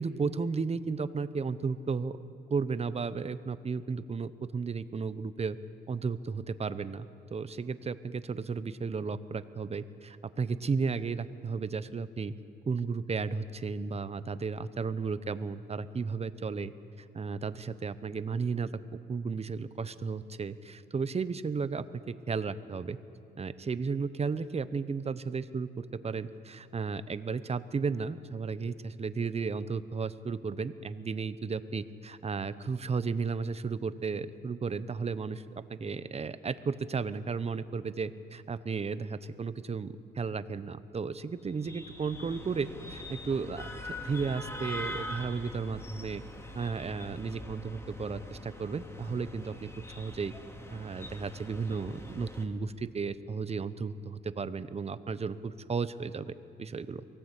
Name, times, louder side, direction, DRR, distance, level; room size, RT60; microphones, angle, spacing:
voice 1, 0.0-2.2 2.5-5.6 5.9-12.3 12.7-16.7 17.1-23.0 23.4-35.4 35.7-46.2 46.5-50.3 50.7-57.0, right 5 dB, 30° right, 13 dB, 0.9 m, -34 dB
sound 1, 41.4-52.5, left 1 dB, 15° left, 2.4 m, -43 dB
23.0 x 17.5 x 8.3 m, 2.8 s
cardioid pair, 90°, 20 cm